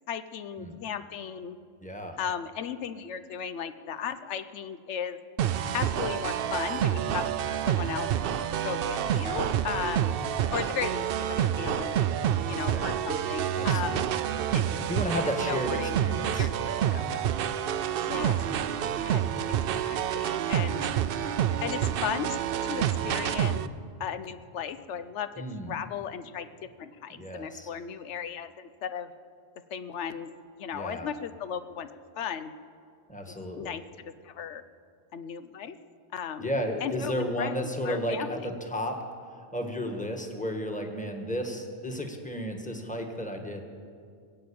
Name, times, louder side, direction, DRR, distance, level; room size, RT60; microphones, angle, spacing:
voice 1, 0.1-1.6 2.2-5.2 5.7-7.3 7.7-8.1 8.6-10.2 10.5-12.0 12.5-14.1 14.5-14.8 15.1-16.0 16.3-17.2 18.0-18.4 19.0-19.2 19.7-20.9 21.6-22.4 22.6-23.6 24.0-29.1 29.7-30.3 30.6-31.9 32.2-32.5 33.5-34.6 35.1-35.8 36.1-36.5 36.8-37.6 37.8-38.4, left 8 dB, 90° left, 12 dB, 1.0 m, -36 dB
voice 2, 1.8-2.2 10.7-10.9 12.7-12.9 13.5-14.2 14.9-16.5 25.4-25.7 27.1-27.7 30.7-31.1 33.1-33.7 36.4-38.9 39.5-43.6, equal, 5° left, 3 dB, 1.4 m, -33 dB
sound 1, 5.4-23.7, right 9 dB, 65° right, 0.7 m, -28 dB
21.0 x 7.7 x 8.6 m, 2.3 s
omnidirectional pair, 1.2 m